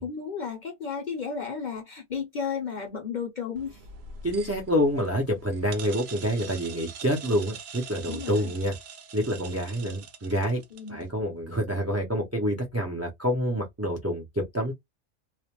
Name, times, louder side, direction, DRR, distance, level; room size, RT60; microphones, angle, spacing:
voice 1, 0.0-3.8 8.0-8.5 10.7-11.0, left 6 dB, 50° left, 0.6 m, -33 dB
sound 1, 3.6-11.0, right 5 dB, 65° right, 0.8 m, -44 dB
voice 2, 4.2-8.7 9.1-10.6 10.9-14.7, equal, 25° right, 0.3 m, -27 dB
2.4 x 2.1 x 2.9 m
omnidirectional pair, 1.3 m